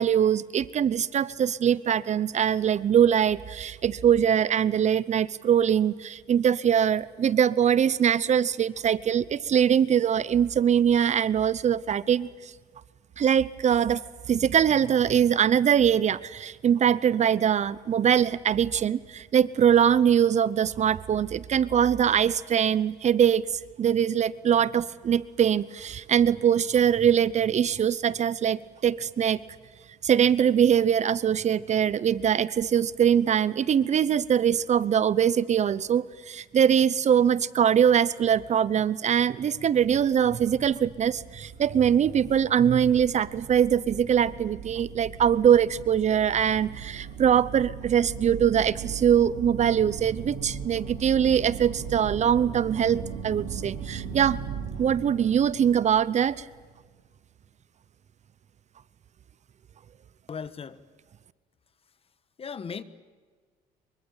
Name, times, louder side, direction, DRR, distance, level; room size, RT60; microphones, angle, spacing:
voice 1, 0.0-12.5 13.2-14.0 14.3-23.4 23.8-29.4 30.0-54.4 54.8-56.4, right 8 dB, 45° right, 19 dB, 0.8 m, -22 dB
sound 1, 40.0-56.8, right 7 dB, 80° right, 7.8 m, -39 dB
voice 2, 60.3-60.8 62.4-62.8, left 6 dB, 35° left, 15 dB, 1.4 m, -36 dB
25.5 x 24.0 x 8.9 m, 1.5 s
cardioid pair, 110°, 17 cm